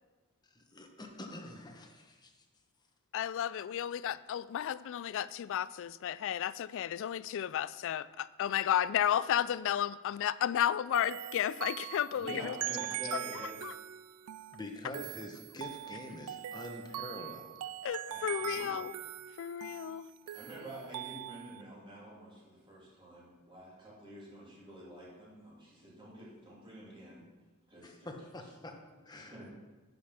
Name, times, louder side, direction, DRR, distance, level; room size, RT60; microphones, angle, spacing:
voice 1, 0.5-2.3 12.7-12.8 14.5-17.7 20.3-20.6 27.8-28.7 29.0-29.6, left 1 dB, 20° left, 3 dB, 1.0 m, -46 dB
voice 2, 3.1-12.6 13.3-13.7 17.8-18.9 19.4-20.1, left 10 dB, 65° left, 18 dB, 0.3 m, -33 dB
sound 1, 10.9-21.6, right 13 dB, 80° right, 0.3 m, -42 dB
voice 3, 12.1-13.6 18.1-18.8 20.3-27.3 27.7-28.1 29.1-29.5, right 1 dB, 25° right, -6 dB, 3.1 m, -48 dB
10.0 x 5.3 x 5.8 m, 1.2 s
head